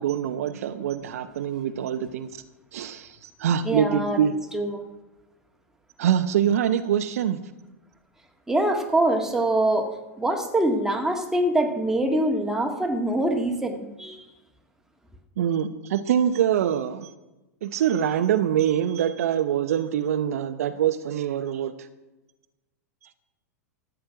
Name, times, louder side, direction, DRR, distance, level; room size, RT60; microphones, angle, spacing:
voice 1, 0.0-2.3 2.7-4.3 6.0-7.4 15.4-17.1 17.6-21.7, right 9 dB, 65° right, 10 dB, 0.8 m, -24 dB
voice 2, 3.6-4.2 4.5-4.8 8.5-9.9 10.2-14.3, right 1 dB, 5° right, 3 dB, 1.9 m, -24 dB
13.0 x 9.0 x 5.9 m, 1.0 s
hypercardioid pair, 100°, 9 cm